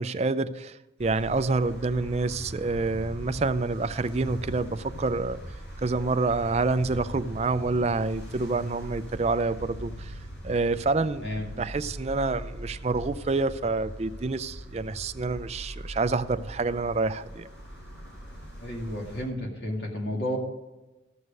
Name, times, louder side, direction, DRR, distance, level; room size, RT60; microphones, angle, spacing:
voice 1, 0.0-5.4 5.8-10.1 10.4-11.3 11.6-17.5, right 3 dB, 35° right, 0.4 m, -27 dB
sound 1, 1.0-19.2, equal, 80° left, 4.5 m, -41 dB
voice 2, 18.6-20.4, equal, 60° left, 2.3 m, -32 dB
14.0 x 6.4 x 5.2 m
head